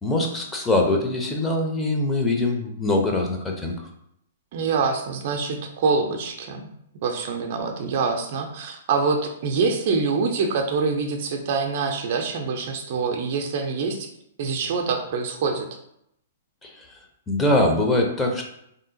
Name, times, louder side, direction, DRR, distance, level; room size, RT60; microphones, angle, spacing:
voice 1, 0.0-3.8 16.6-16.9 17.3-18.4, left 2 dB, 10° left, 1 dB, 0.6 m, -23 dB
voice 2, 4.5-6.6 7.0-14.1 14.4-15.7, right 4 dB, 50° right, 4 dB, 0.5 m, -25 dB
3.5 x 2.7 x 2.7 m, 0.74 s
figure-of-eight pair, 110°, 0 cm